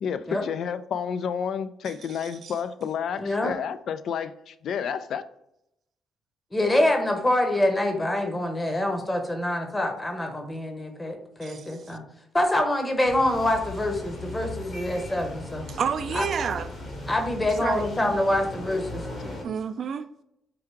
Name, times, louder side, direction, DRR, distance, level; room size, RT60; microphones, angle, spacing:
voice 1, 0.0-5.2, left 7 dB, 65° left, 0.3 m, -30 dB
voice 2, 3.2-3.6 6.5-12.0 12.3-15.7 16.1-16.3 17.1-19.1, left 1 dB, 20° left, 0.9 m, -25 dB
voice 3, 11.4-12.0 15.7-16.7 17.6-17.9 19.4-20.1, right 7 dB, 55° right, 0.3 m, -30 dB
sound 1, 13.0-19.4, left 1 dB, 50° left, 1.4 m, -37 dB
4.6 x 2.4 x 4.5 m
cardioid pair, 90°, 0 cm